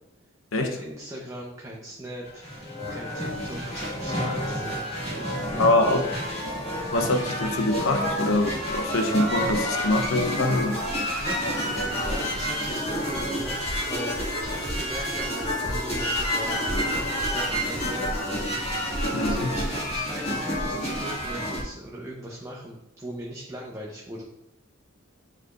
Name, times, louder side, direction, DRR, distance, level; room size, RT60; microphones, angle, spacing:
voice 1, 0.5-6.3 10.3-10.6 11.2-18.1 19.2-24.2, right 1 dB, 15° right, -3 dB, 0.8 m, -39 dB
sound 1, 2.2-21.6, equal, 30° left, 1.9 m, -29 dB
voice 2, 5.6-6.0 6.9-10.8 19.1-19.5, left 2 dB, 80° left, 6 dB, 0.8 m, -24 dB
9.2 x 4.8 x 2.5 m, 0.89 s
head